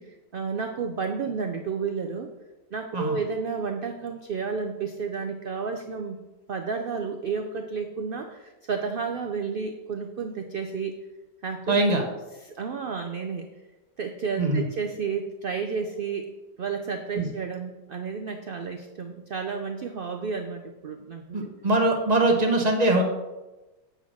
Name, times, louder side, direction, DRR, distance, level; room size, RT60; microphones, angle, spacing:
voice 1, 0.0-2.3 2.7-6.2 6.5-10.9 11.4-12.0 12.5-13.5 14.0-16.3 16.6-21.5, right 5 dB, 85° right, 5 dB, 0.4 m, -31 dB
voice 2, 11.7-12.0 14.4-14.6 17.1-17.3 21.3-23.0, right 2 dB, 30° right, 2 dB, 0.9 m, -22 dB
8.2 x 3.8 x 6.1 m, 1.1 s
omnidirectional pair, 1.6 m